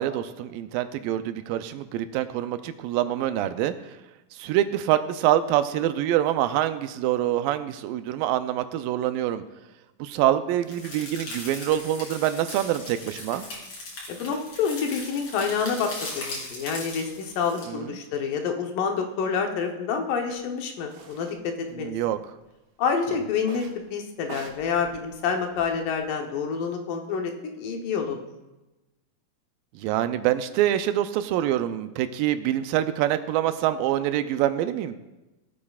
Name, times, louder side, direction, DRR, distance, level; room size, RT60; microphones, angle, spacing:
voice 1, 0.0-3.7 4.3-9.4 10.0-13.4 17.7-17.9 21.8-22.2 29.8-35.0, right 12 dB, 85° right, 10 dB, 2.2 m, -25 dB
sound 1, 10.7-17.6, left 2 dB, 55° left, 4.1 m, -39 dB
voice 2, 14.1-21.9 22.8-23.7 23.9-27.3 27.6-28.2, left 6 dB, 75° left, 3 dB, 2.5 m, -28 dB
sound 2, 20.3-20.4 20.9-21.4 21.7-22.4 23.4-23.8 24.2-26.0, right 4 dB, 70° right, 1.5 m, -45 dB
18.5 x 8.5 x 2.4 m, 1.0 s
omnidirectional pair, 4.0 m